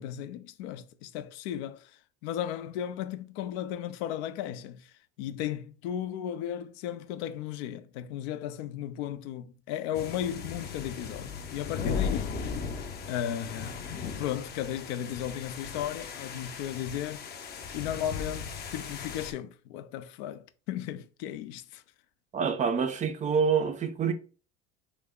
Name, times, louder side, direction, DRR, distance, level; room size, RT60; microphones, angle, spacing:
voice 1, 0.0-12.4 13.1-13.8 14.1-17.3 17.7-21.8, left 10 dB, 90° left, 0.5 m, -35 dB
sound 1, 9.9-19.3, left 6 dB, 30° left, 0.5 m, -37 dB
voice 2, 22.3-24.1, right 6 dB, 25° right, 0.3 m, -26 dB
3.3 x 2.1 x 3.6 m
cardioid pair, 130°, 32 cm